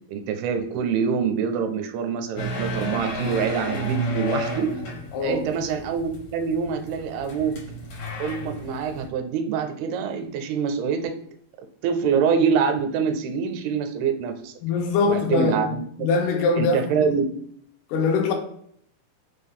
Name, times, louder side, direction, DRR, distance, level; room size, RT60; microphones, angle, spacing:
voice 1, 0.1-4.8 5.2-7.6 8.2-11.1 11.8-14.5 15.1-16.1 16.6-17.3, right 6 dB, 85° right, 2.5 m, -25 dB
sound 1, 2.4-9.1, right 1 dB, 70° left, 1.5 m, -32 dB
voice 2, 5.1-5.5 14.6-17.1 17.9-18.3, left 4 dB, 90° left, 2.6 m, -23 dB
5.9 x 2.2 x 3.4 m
omnidirectional pair, 4.5 m